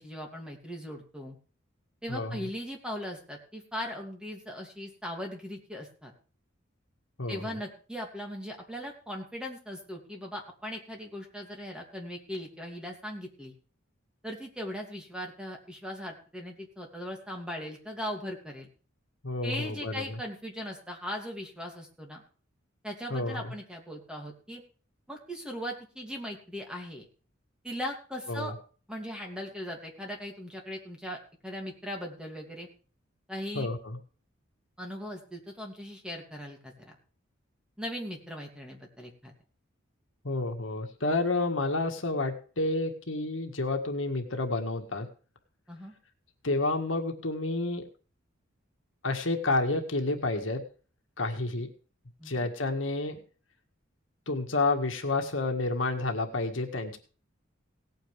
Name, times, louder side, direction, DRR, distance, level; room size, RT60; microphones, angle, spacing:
voice 1, 0.0-1.4 2.0-6.1 7.3-13.5 14.2-18.7 19.4-22.2 22.8-24.6 25.1-27.1 27.6-28.5 28.9-32.7 33.3-33.7 34.8-37.0 37.8-39.3 45.7-45.9 52.2-52.3, equal, 5° right, 2 dB, 2.6 m, -39 dB
voice 2, 2.1-2.4 7.2-7.4 19.2-20.2 23.1-23.5 28.3-28.5 33.5-34.0 40.2-45.1 46.4-47.8 49.0-50.7 51.2-51.7 52.3-53.2 54.3-57.0, left 2 dB, 75° left, 4 dB, 1.9 m, -30 dB
18.0 x 9.2 x 3.5 m, 0.39 s
head